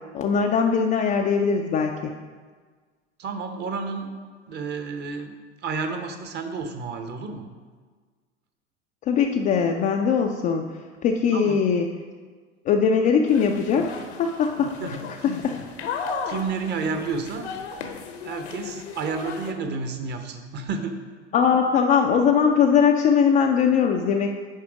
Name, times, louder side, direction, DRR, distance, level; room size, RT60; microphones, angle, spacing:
voice 1, 0.1-2.1 9.1-10.7 11.0-11.9 12.7-15.0 15.2-15.6 21.3-24.4, left 6 dB, 25° left, 2 dB, 0.3 m, -21 dB
voice 2, 3.2-4.1 4.5-5.3 5.6-7.4 11.3-11.6 14.6-15.9 16.3-17.5 18.2-21.0, right 4 dB, 30° right, 7 dB, 0.8 m, -31 dB
sound 1, 13.3-19.5, left 5 dB, 65° left, 0.8 m, -35 dB
9.9 x 3.4 x 4.8 m, 1.5 s
figure-of-eight pair, 80°, 35 cm